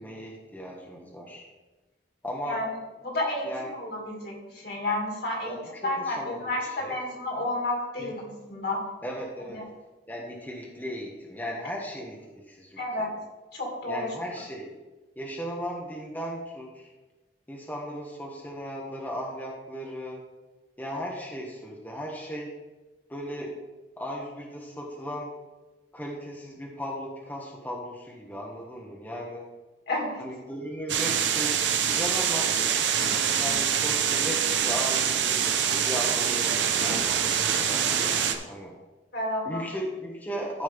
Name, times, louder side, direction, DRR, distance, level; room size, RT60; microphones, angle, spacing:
voice 1, 0.0-1.5 2.2-2.6 3.4-3.7 5.4-7.0 8.0-8.1 9.0-9.6 10.1-13.2 13.9-14.7 15.2-16.9 17.5-20.2 20.8-22.6 23.1-23.5 24.0-25.3 25.9-29.5 30.2-32.5 33.3-38.7 39.4-40.6, equal, 10° left, -2 dB, 1.2 m, -37 dB
voice 2, 3.0-3.5 3.8-5.6 5.8-8.8 9.6-9.7 12.8-13.2 13.5-14.1 29.9-30.2 39.1-39.6, left 1 dB, 60° left, -1 dB, 2.6 m, -31 dB
sound 1, 30.9-38.4, right 8 dB, 75° right, 0.8 m, -25 dB
13.5 x 5.2 x 3.6 m, 1.2 s
head